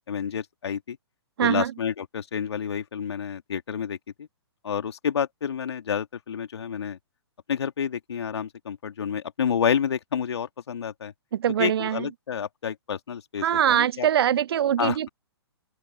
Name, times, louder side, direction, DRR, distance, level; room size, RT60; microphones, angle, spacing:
voice 1, 0.1-1.0 1.4-4.3 4.6-7.0 7.5-11.1 11.6-14.1 14.8-15.0, left 7 dB, 70° left, 2.7 m, -29 dB
voice 2, 1.4-1.7 11.3-12.1 13.4-15.1, right 10 dB, 60° right, 0.5 m, -23 dB
open air
hypercardioid pair, 130°, 14 cm